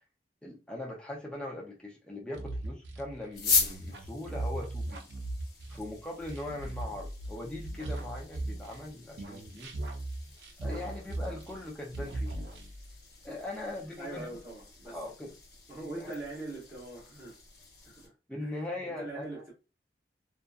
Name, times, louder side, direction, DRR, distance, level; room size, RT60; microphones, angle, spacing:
voice 1, 0.4-5.1 5.7-9.7 10.6-12.4 13.2-14.4 14.9-15.3 16.0-16.1 18.3-19.4, left 1 dB, 5° left, 0.4 m, -40 dB
sound 1, 2.3-8.9 9.2-11.7 11.9-13.0, right 2 dB, 80° right, 0.5 m, -38 dB
sound 2, 3.3-18.1, left 4 dB, 60° left, 0.8 m, -39 dB
voice 2, 14.0-15.0 15.7-17.4 17.8-18.1 18.4-19.5, right 2 dB, 15° right, 0.9 m, -42 dB
2.6 x 2.3 x 2.2 m
head